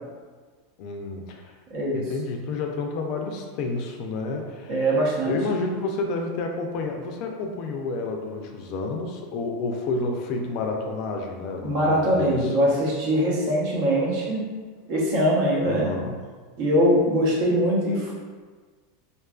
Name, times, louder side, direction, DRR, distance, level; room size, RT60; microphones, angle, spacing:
voice 1, 0.8-1.5 1.9-4.8 5.3-12.6 15.6-16.1, left 3 dB, 55° left, 2 dB, 0.3 m, -30 dB
voice 2, 1.7-2.0 4.7-5.4 11.6-14.4 14.9-15.9 16.6-18.1, equal, 65° right, -5 dB, 0.8 m, -22 dB
2.6 x 2.4 x 2.3 m, 1.4 s
supercardioid pair, 115°, 0 cm